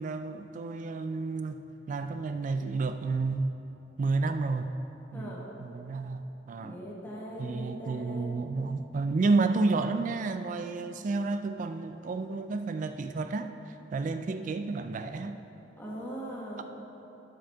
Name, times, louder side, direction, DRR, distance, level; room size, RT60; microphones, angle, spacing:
voice 1, 0.0-3.5 4.0-4.8 5.1-6.8 7.4-15.4, right 3 dB, 45° right, 9 dB, 0.3 m, -31 dB
voice 2, 5.1-5.5 6.6-8.3 15.8-16.6, equal, 10° left, -5 dB, 1.3 m, -40 dB
11.5 x 7.5 x 3.5 m, 3.0 s
head